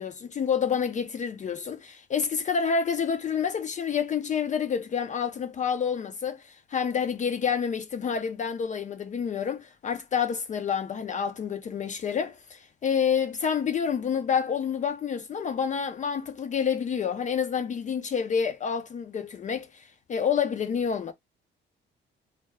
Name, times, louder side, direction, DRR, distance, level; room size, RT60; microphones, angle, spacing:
voice 1, 0.0-21.1, left 7 dB, 40° left, 0.4 m, -28 dB
2.2 x 2.0 x 3.3 m
cardioid pair, 90°, 20 cm